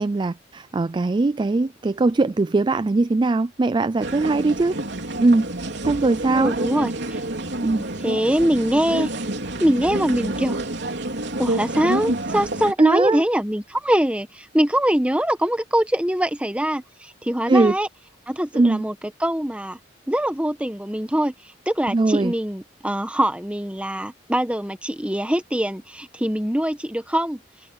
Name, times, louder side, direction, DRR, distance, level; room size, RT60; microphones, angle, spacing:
voice 1, 0.0-4.8 5.2-5.5 5.8-6.5 7.6-7.9 12.8-13.2 17.5-17.7 18.5-18.9 21.9-22.3, right 3 dB, 25° right, 0.4 m, -20 dB
people - indoor crowd - government office queue, 4.0-12.7, right 1 dB, 65° right, 3.8 m, -28 dB
voice 2, 6.3-7.2 8.0-9.1 9.6-10.6 11.4-17.9 18.3-18.9 19.2-19.8 20.1-21.3 21.7-27.4, equal, 5° right, 1.4 m, -23 dB
head